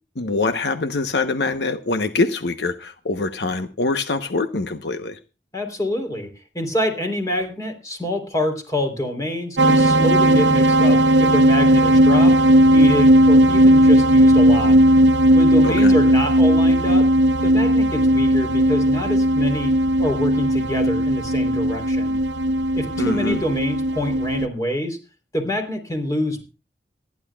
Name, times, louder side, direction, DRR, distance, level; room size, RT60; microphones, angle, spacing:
voice 1, 0.2-5.2 15.6-15.9 23.0-23.4, left 3 dB, 75° left, 9 dB, 1.0 m, -24 dB
voice 2, 5.5-6.3 6.5-12.3 12.7-14.8 15.3-17.1 17.4-19.7 20.0-22.2 22.7-25.0 25.3-26.4, left 1 dB, 20° left, 4 dB, 3.5 m, -26 dB
sound 1, 9.6-24.5, right 1 dB, 85° right, 0.8 m, -16 dB
26.5 x 10.5 x 2.3 m, 0.31 s
head